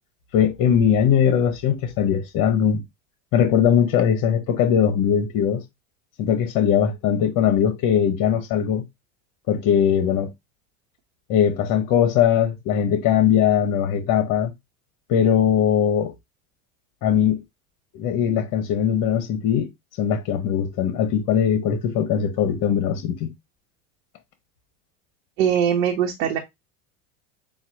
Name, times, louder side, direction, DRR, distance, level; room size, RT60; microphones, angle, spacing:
voice 1, 0.3-2.8 3.3-5.6 6.2-8.8 9.5-10.3 11.3-14.5 15.1-16.1 17.0-17.4 17.9-19.7 20.0-23.3, left 8 dB, 50° left, 1.1 m, -20 dB
voice 2, 25.4-26.4, right 9 dB, 70° right, 1.1 m, -21 dB
7.2 x 2.5 x 2.8 m
hypercardioid pair, 90°, 41 cm